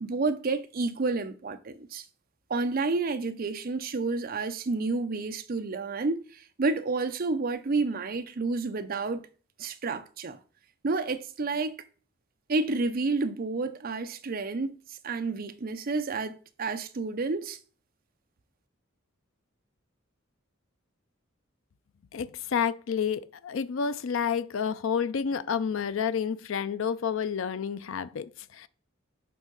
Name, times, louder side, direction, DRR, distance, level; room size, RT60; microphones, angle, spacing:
voice 1, 0.0-2.0 2.5-9.3 9.6-10.4 10.8-11.8 12.5-17.6, right 3 dB, 45° right, 0.5 m, -30 dB
voice 2, 22.1-28.7, left 7 dB, 70° left, 0.4 m, -30 dB
9.1 x 3.6 x 3.9 m
head